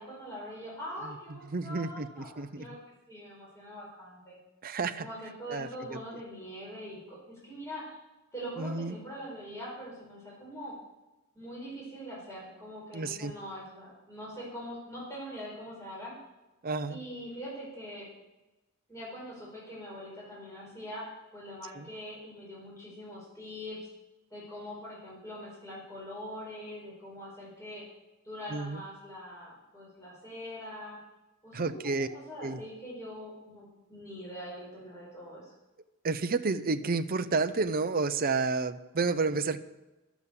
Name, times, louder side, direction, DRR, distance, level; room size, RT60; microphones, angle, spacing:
voice 1, 0.0-2.3 2.6-2.8 3.1-4.4 5.0-8.0 8.3-10.7 11.3-16.2 16.9-18.1 18.9-21.0 21.3-23.8 24.3-27.8 28.2-31.0 31.4-35.5, equal, 15° left, -6 dB, 4.6 m, -43 dB
voice 2, 1.0-2.7 4.6-5.1 5.5-6.0 8.6-9.0 12.9-13.3 16.6-17.0 21.7-21.9 28.5-28.8 31.5-32.1 32.4-32.6 36.0-39.6, right 4 dB, 45° right, 10 dB, 0.6 m, -31 dB
11.0 x 7.2 x 8.3 m, 1.0 s
head